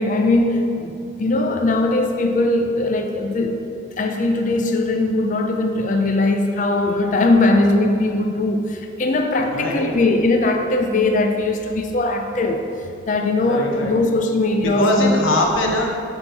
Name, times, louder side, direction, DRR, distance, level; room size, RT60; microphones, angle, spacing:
voice 1, 0.0-3.6 4.0-12.6 13.1-15.2, left 2 dB, 40° left, 4 dB, 0.5 m, -20 dB
voice 2, 9.4-9.9 13.4-13.9 14.6-15.9, left 1 dB, 85° left, 0 dB, 0.9 m, -22 dB
8.1 x 3.6 x 4.5 m, 2.4 s
head